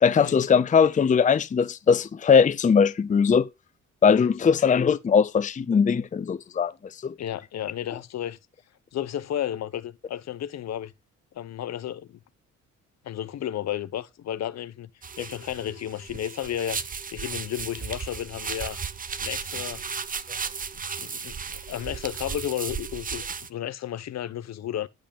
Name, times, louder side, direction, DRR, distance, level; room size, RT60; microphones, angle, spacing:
voice 1, 0.0-3.5 4.0-6.7 7.0-7.1, left 6 dB, 25° left, 0.6 m, -20 dB
voice 2, 7.2-8.4 8.9-10.9 11.4-12.2 13.0-14.9 15.2-16.8 17.1-18.8 19.2-19.8 21.0-21.4 21.7-23.2 23.5-24.9, left 11 dB, 60° left, 0.8 m, -32 dB
sound 1, 15.0-23.5, right 6 dB, 30° right, 0.7 m, -35 dB
10.5 x 5.6 x 5.2 m
cardioid pair, 90°, 30 cm